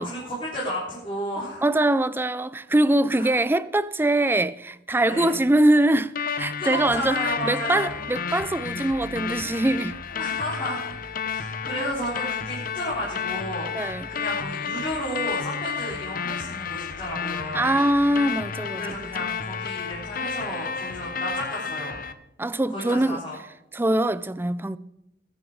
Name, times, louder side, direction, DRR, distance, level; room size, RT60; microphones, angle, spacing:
voice 1, 0.0-1.7 3.1-3.4 5.1-5.4 6.6-8.0 10.1-11.0 11.3-17.7 18.7-22.0 22.7-23.4, equal, 30° left, 3.9 m, -32 dB
voice 2, 1.6-6.1 6.4-7.2 7.4-10.0 13.7-14.1 17.5-19.3 22.4-23.2 23.7-24.8, right 1 dB, 10° right, 0.4 m, -23 dB
sound 1, 6.2-22.1, left 6 dB, 50° left, 0.8 m, -31 dB
21.5 x 7.1 x 5.1 m
head